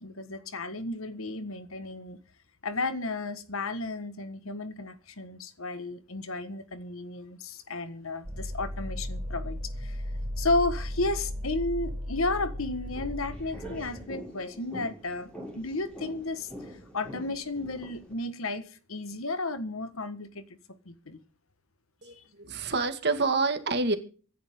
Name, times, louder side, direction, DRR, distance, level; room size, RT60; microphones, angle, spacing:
voice 1, 0.0-2.2 2.6-10.1 10.4-20.4 20.8-21.2 22.1-22.2, left 2 dB, 65° left, 1.6 m, -33 dB
sound 1, 8.2-14.0, equal, 25° right, 3.1 m, -35 dB
sound 2, 12.9-18.1, equal, 5° left, 7.4 m, -44 dB
voice 2, 22.0-24.0, right 3 dB, 50° right, 2.1 m, -27 dB
25.0 x 10.0 x 3.8 m
head